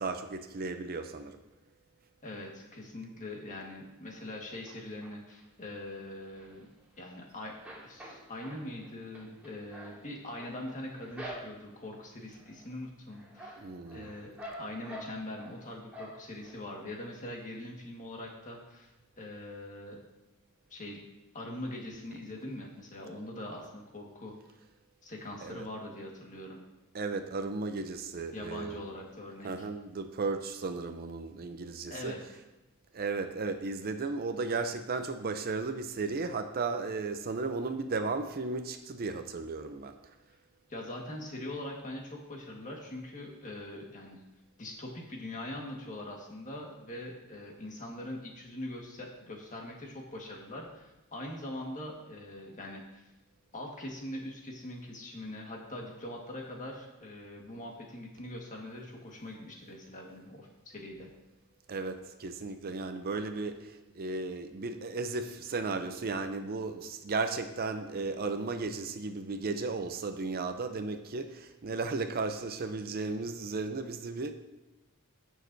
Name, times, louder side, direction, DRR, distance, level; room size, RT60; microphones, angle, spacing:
voice 1, 0.0-1.4 13.6-14.1 25.4-25.6 26.9-28.8 29.4-32.1 32.9-40.0 61.7-74.3, right 3 dB, 45° right, 8 dB, 0.5 m, -35 dB
voice 2, 2.2-6.7 7.0-7.6 7.8-13.6 13.9-18.9 19.2-20.0 20.7-21.0 21.3-24.3 25.0-26.6 28.3-29.7 31.9-32.2 40.7-44.2 44.6-53.0 53.5-61.1, left 1 dB, 35° left, 0 dB, 1.6 m, -42 dB
sound 1, 4.7-5.4 5.9-7.2 7.5-11.9 12.3-12.8 13.1-15.6 15.9-16.6 17.0-17.1 17.3-17.4, equal, 5° right, 2.3 m, -47 dB
15.5 x 6.5 x 2.7 m, 1.0 s
head